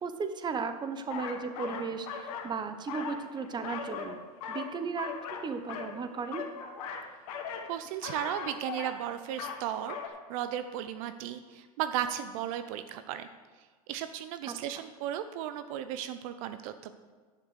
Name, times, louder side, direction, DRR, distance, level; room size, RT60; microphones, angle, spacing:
voice 1, 0.0-4.2 4.5-5.1 5.4-6.4 14.4-14.5, right 5 dB, 20° right, 9 dB, 1.0 m, -35 dB
sound 1, 1.1-2.5 2.8-4.2 4.4-5.9 6.2-7.7 8.0-9.0 9.3-9.6 9.9-10.1, left 6 dB, 65° left, 1.8 m, -39 dB
voice 2, 7.7-13.3 13.9-16.9, right 11 dB, 60° right, 10 dB, 0.7 m, -35 dB
10.5 x 6.5 x 6.4 m, 1.5 s
hypercardioid pair, 100°, 20 cm